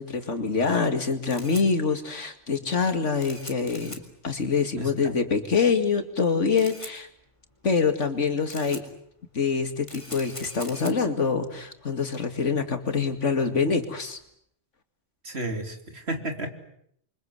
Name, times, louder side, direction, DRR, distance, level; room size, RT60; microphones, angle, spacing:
voice 1, 0.0-7.1 7.6-8.8 9.3-14.2, left 5 dB, 80° left, 7 dB, 2.7 m, -25 dB
Camera, 1.1-14.3, left 1 dB, 25° left, 3.9 m, -46 dB
voice 2, 15.2-16.5, right 1 dB, 60° right, 5 dB, 3.4 m, -32 dB
29.0 x 24.5 x 8.1 m, 0.71 s
omnidirectional pair, 1.2 m